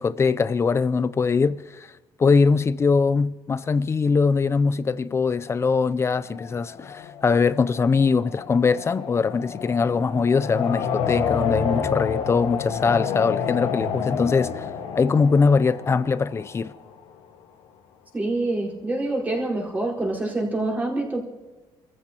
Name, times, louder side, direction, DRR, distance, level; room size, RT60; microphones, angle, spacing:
voice 1, 0.0-1.9 2.2-14.7 15.0-16.7, left 5 dB, 25° left, 0.5 m, -22 dB
sound 1, 6.3-17.1, left 7 dB, 90° left, 1.7 m, -29 dB
voice 2, 18.1-21.2, right 2 dB, 15° right, 4.6 m, -26 dB
29.0 x 14.5 x 3.0 m
cardioid pair, 125°, 10 cm